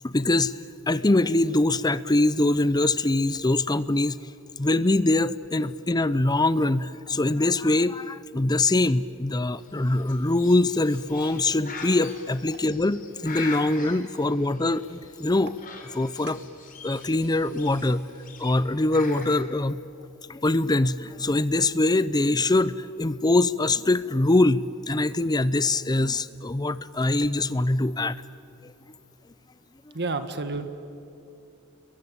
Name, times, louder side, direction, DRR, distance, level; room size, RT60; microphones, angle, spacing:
voice 1, 0.0-0.5 0.9-4.2 4.6-15.5 16.0-16.4 16.8-18.1 18.4-19.8 20.3-28.2 28.6-28.7, left 2 dB, 20° left, 16 dB, 0.6 m, -23 dB
Bird, 9.5-19.4, left 4 dB, 40° left, 3.9 m, -43 dB
voice 2, 29.9-30.7, right 3 dB, 55° right, 9 dB, 1.8 m, -29 dB
30.0 x 22.5 x 8.8 m, 2.6 s
head